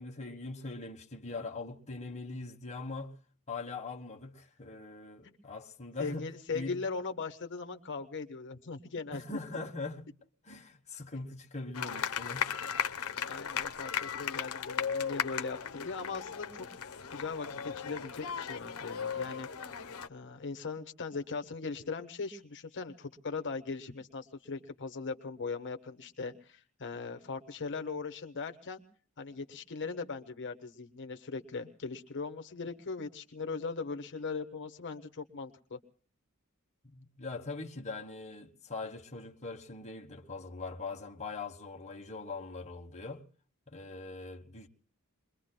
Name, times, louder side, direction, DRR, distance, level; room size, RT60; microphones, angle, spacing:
voice 1, 0.0-3.1 3.5-6.3 6.5-6.7 9.1-10.1 10.4-12.5 36.8-43.2 43.7-44.7, left 3 dB, 30° left, 1.3 m, -41 dB
voice 2, 6.0-9.2 13.2-16.7 17.1-19.5 20.1-28.8 29.2-35.8, left 4 dB, 55° left, 1.2 m, -39 dB
sound 1, 11.7-20.1, left 7 dB, 70° left, 0.9 m, -36 dB
29.0 x 22.0 x 2.2 m
head